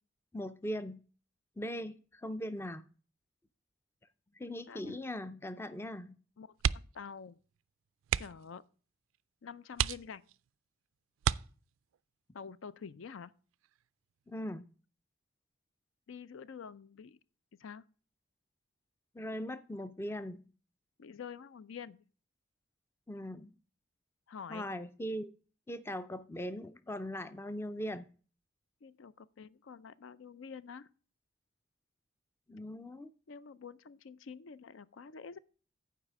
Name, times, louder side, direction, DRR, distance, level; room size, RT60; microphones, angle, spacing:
voice 1, 0.3-1.0 1.6-2.9 4.4-6.2 14.3-14.7 19.1-20.5 23.1-23.5 24.5-25.3 25.7-28.1 32.5-33.1, equal, 10° left, 0.4 m, -40 dB
voice 2, 4.7-5.0 6.4-7.4 8.2-8.6 9.4-10.2 12.3-13.3 16.1-17.2 17.6-17.8 21.0-22.0 24.3-24.7 28.8-30.9 33.3-35.4, left 6 dB, 75° left, 0.4 m, -47 dB
sound 1, 6.5-7.1 7.4-7.6 8.0-8.5 9.1-9.2 9.7-10.5 11.2-12.0 13.5-13.9 14.2-14.3, right 9 dB, 80° right, 0.3 m, -33 dB
8.2 x 4.9 x 7.3 m
head